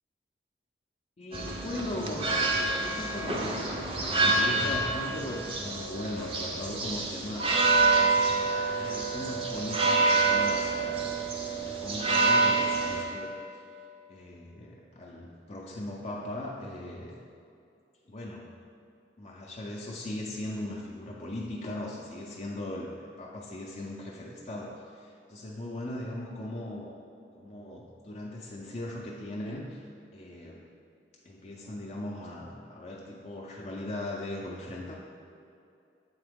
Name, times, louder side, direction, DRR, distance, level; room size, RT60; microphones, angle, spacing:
voice 1, 1.2-7.6 7.9-8.2 8.8-13.3 14.1-17.2 18.1-18.6 19.2-27.0 27.3-30.6 31.2-35.0, left 1 dB, 40° left, -3 dB, 0.5 m, -39 dB
sound 1, 1.3-13.0, right 3 dB, 30° right, 0.5 m, -27 dB
7.8 x 3.7 x 3.5 m, 2.5 s
head